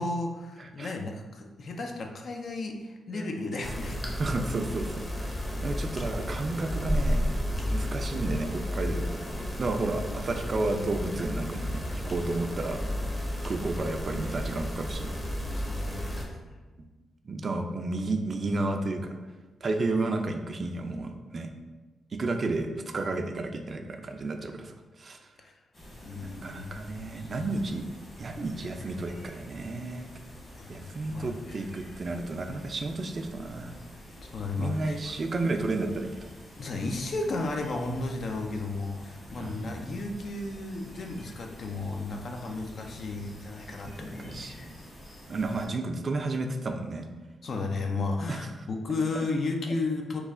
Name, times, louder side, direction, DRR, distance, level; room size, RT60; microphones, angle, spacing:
voice 1, 0.0-4.0 15.5-16.4 25.4-25.5 26.0-26.6 30.5-30.8 31.1-31.6 34.2-35.0 36.6-44.7 47.4-50.2, left 3 dB, 60° left, 2 dB, 0.5 m, -33 dB
voice 2, 0.6-0.9 3.1-3.3 4.2-5.3 5.6-12.8 13.4-15.1 17.2-19.2 19.6-21.5 22.1-25.2 26.2-27.8 28.2-30.1 30.7-33.7 34.6-36.3 39.4-39.8 43.9-44.7 45.3-47.1 48.3-48.5, right 2 dB, 50° right, 5 dB, 0.4 m, -32 dB
sound 1, 3.6-16.3, equal, 20° left, 0.7 m, -32 dB
sound 2, 25.7-45.7, equal, 45° left, 1.5 m, -48 dB
3.1 x 2.3 x 3.6 m, 1.2 s
supercardioid pair, 50°, 0 cm